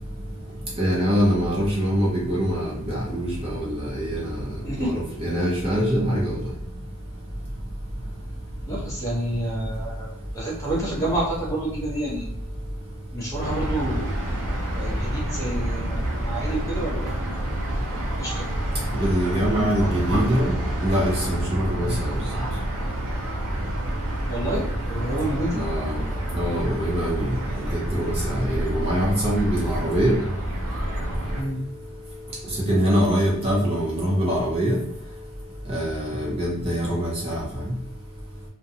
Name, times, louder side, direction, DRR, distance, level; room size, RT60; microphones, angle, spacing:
voice 1, 0.8-4.4 4.8-6.4 18.9-20.5 20.8-22.2 25.6-26.0 26.3-27.3 27.9-30.2 32.7-34.8 35.7-37.4, equal, 25° right, -4 dB, 0.5 m, -24 dB
voice 2, 8.7-12.3 13.1-14.2 14.7-17.2 18.2-18.5 21.8-22.0 24.3-25.6 31.3-31.6, right 1 dB, 15° left, -5 dB, 0.8 m, -29 dB
sound 1, 13.4-31.4, right 1 dB, 70° right, 0.6 m, -28 dB
2.6 x 2.1 x 2.7 m, 0.71 s
head